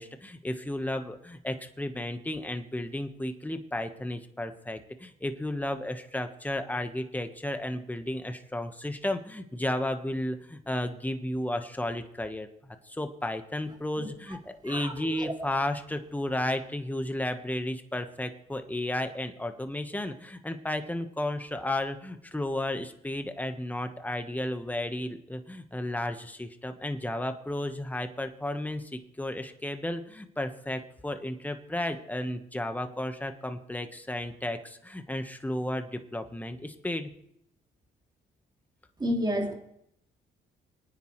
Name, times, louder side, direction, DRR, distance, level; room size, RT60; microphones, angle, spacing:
voice 1, 0.0-37.1, left 1 dB, 10° left, 6 dB, 1.3 m, -33 dB
voice 2, 14.0-14.4 14.6-15.5 39.0-39.5, equal, 20° right, 2 dB, 2.6 m, -32 dB
26.5 x 9.5 x 3.3 m, 0.75 s
cardioid pair, 90°, 20 cm